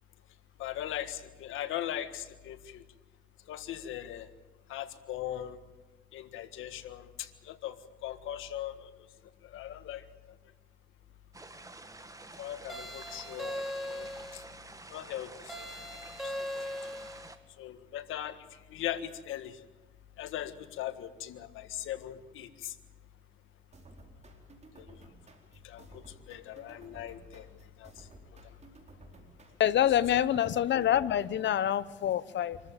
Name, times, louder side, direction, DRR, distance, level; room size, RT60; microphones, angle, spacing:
voice 1, 0.6-2.8 3.5-4.3 4.7-5.6 6.1-8.9 9.4-10.1 12.4-14.4 14.9-15.6 16.2-16.8 17.6-19.6 20.2-22.8 24.7-25.0 25.6-27.5 27.8-28.4, left 12 dB, 90° left, 10 dB, 1.7 m, -40 dB
sound 1, 11.3-17.4, right 2 dB, 15° right, 1.9 m, -49 dB
sound 2, 12.7-14.5 15.5-17.3, left 1 dB, ahead, 4.6 m, -39 dB
sound 3, 23.7-31.9, right 2 dB, 35° right, 4.2 m, -55 dB
voice 2, 29.6-32.6, left 11 dB, 65° left, 17 dB, 1.0 m, -26 dB
26.0 x 14.0 x 9.0 m, 1.2 s
cardioid pair, 90°, 20 cm